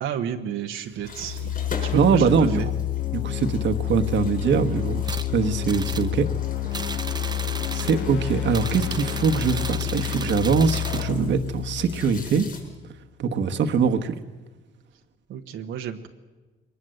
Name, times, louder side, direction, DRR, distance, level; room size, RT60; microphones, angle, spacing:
voice 1, 0.0-1.5 1.8-2.7 15.3-16.1, right 8 dB, 85° right, 4 dB, 1.3 m, -31 dB
sound 1, 1.0-12.8, left 12 dB, 65° left, 2.3 m, -29 dB
sound 2, 1.0-12.6, left 4 dB, 45° left, 6.6 m, -42 dB
voice 2, 1.9-2.6 3.1-6.3 6.8-7.3 7.7-12.5 13.2-14.1, right 5 dB, 65° right, 6 dB, 1.4 m, -23 dB
sound 3, 5.0-5.3 5.7-6.1 6.7-8.0 8.5-11.1, right 4 dB, 20° right, 0.8 m, -35 dB
22.5 x 19.5 x 7.8 m, 1.2 s
cardioid pair, 90°, 20 cm